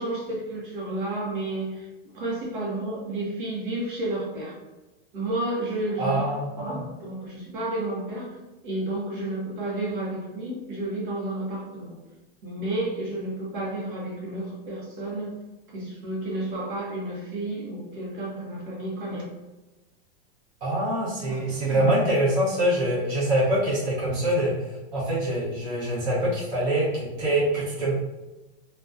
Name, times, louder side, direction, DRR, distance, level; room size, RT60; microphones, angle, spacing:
voice 1, 0.0-1.9 2.1-4.5 5.1-6.2 6.6-8.3 8.6-12.0 12.4-15.3 15.7-19.2 21.3-21.9, right 2 dB, 55° right, -4 dB, 0.7 m, -31 dB
voice 2, 6.0-6.5 20.6-27.9, right 1 dB, 25° right, -9 dB, 0.8 m, -24 dB
2.3 x 2.1 x 2.4 m, 1.1 s
supercardioid pair, 170°, 31 cm